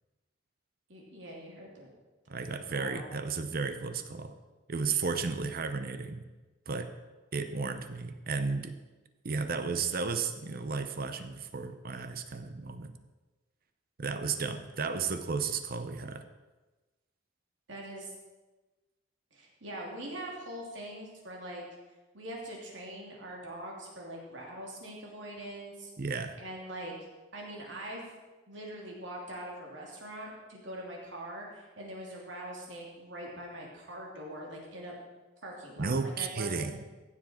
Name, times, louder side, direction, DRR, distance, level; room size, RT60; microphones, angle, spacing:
voice 1, 0.9-1.9 2.6-3.1 17.7-18.1 19.3-21.6 22.1-25.9 26.4-26.9 27.3-28.1 28.5-34.9 35.4-36.7, right 1 dB, 70° right, -2 dB, 2.9 m, -43 dB
voice 2, 2.3-4.4 4.7-6.3 6.7-6.9 7.3-8.8 9.2-12.9 14.0-16.2 26.0-26.4 35.8-36.8, right 4 dB, 50° right, 9 dB, 0.7 m, -33 dB
15.5 x 7.4 x 4.4 m, 1.2 s
head